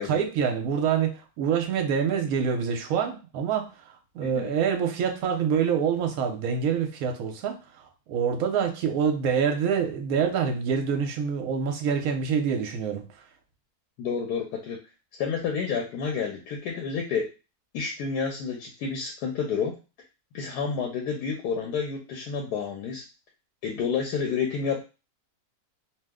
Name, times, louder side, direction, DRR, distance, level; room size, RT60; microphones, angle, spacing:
voice 1, 0.1-13.3, right 7 dB, 70° right, 4 dB, 1.0 m, -26 dB
voice 2, 14.0-14.8 15.2-17.3 17.7-19.8 20.3-23.0 23.6-24.8, left 6 dB, 85° left, 1 dB, 1.1 m, -29 dB
2.7 x 2.0 x 3.5 m, 0.31 s
omnidirectional pair, 1.7 m